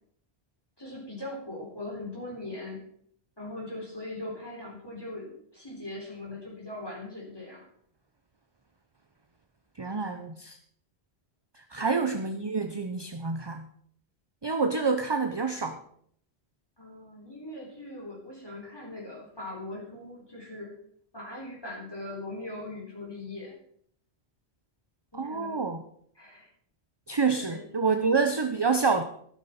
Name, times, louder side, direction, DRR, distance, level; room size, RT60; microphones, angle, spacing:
voice 1, 0.8-2.8 3.4-7.7 11.8-11.9 16.8-20.8 21.1-23.6 25.1-25.6 26.1-26.5 27.4-28.2, left 2 dB, 20° left, -3 dB, 3.8 m, -40 dB
voice 2, 9.8-10.6 11.7-13.6 14.4-15.8 25.1-25.8 27.1-29.0, right 4 dB, 25° right, 7 dB, 0.7 m, -27 dB
12.5 x 12.0 x 4.3 m, 0.64 s
omnidirectional pair, 1.1 m